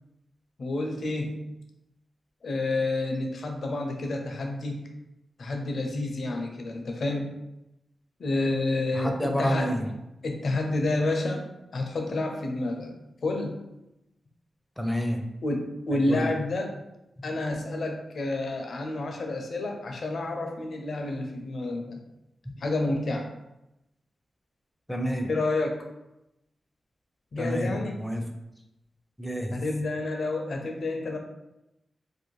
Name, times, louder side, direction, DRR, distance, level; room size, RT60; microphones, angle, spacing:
voice 1, 0.6-1.5 2.4-4.9 5.4-7.3 8.2-9.8 10.2-11.5 11.7-12.9 13.2-13.6 15.4-16.7 17.2-22.0 22.6-23.3 25.2-25.8 27.3-28.0 29.5-31.2, left 2 dB, 65° left, 3 dB, 0.5 m, -29 dB
voice 2, 8.9-9.8 14.8-15.2 15.9-16.3 24.9-25.3 27.4-28.2 29.2-29.6, equal, 5° left, 3 dB, 0.5 m, -29 dB
2.6 x 2.1 x 3.0 m, 0.91 s
cardioid pair, 60°, 0 cm